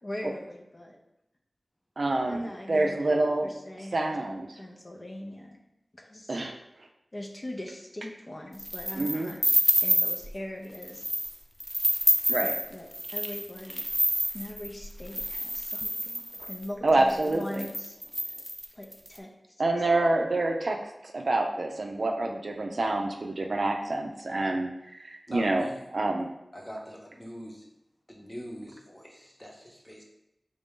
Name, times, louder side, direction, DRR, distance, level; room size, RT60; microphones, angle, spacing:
voice 1, 0.0-1.0 2.0-3.2 3.4-5.6 5.9-6.4 7.1-9.5 9.8-11.0 12.4-14.0 14.3-18.0 18.7-19.3, left 1 dB, 45° left, 0 dB, 0.6 m, -41 dB
voice 2, 2.0-3.5 3.9-4.5 6.3-6.5 8.9-9.3 12.3-12.5 16.4-16.5 16.8-17.7 19.6-25.6 25.9-26.3, right 2 dB, 70° right, 2 dB, 0.4 m, -27 dB
sound 1, 8.6-10.3 10.7-11.3 11.6-16.6 17.2-17.3 17.5-19.1, equal, ahead, 0.3 m, -28 dB
voice 3, 25.3-25.8 26.5-27.7 28.1-30.0, equal, 20° left, -1 dB, 0.9 m, -43 dB
3.3 x 2.5 x 3.6 m, 0.86 s
cardioid pair, 45°, 0 cm